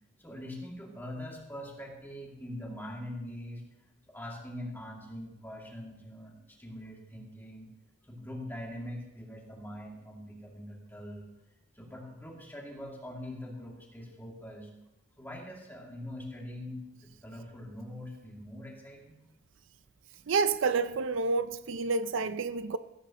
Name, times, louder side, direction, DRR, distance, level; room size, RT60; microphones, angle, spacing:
voice 1, 0.2-3.6 4.1-7.7 8.1-11.3 11.7-14.7 15.2-19.2, left 1 dB, 10° left, 2.3 m, -43 dB
voice 2, 20.3-22.8, right 4 dB, 65° right, 0.5 m, -29 dB
15.5 x 15.0 x 3.0 m
head